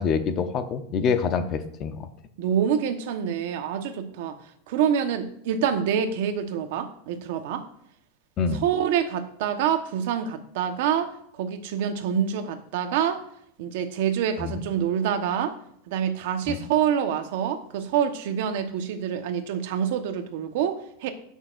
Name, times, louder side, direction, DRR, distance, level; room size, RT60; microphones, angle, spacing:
voice 1, 0.0-2.1 8.4-8.6 14.4-14.6 16.5-16.6, left 5 dB, 30° left, 9 dB, 0.7 m, -26 dB
voice 2, 2.4-4.4 4.7-7.6 8.6-13.2 13.6-15.6 15.9-21.1, right 8 dB, 60° right, 8 dB, 1.1 m, -26 dB
19.0 x 6.5 x 2.5 m, 0.70 s
supercardioid pair, 165°, 0 cm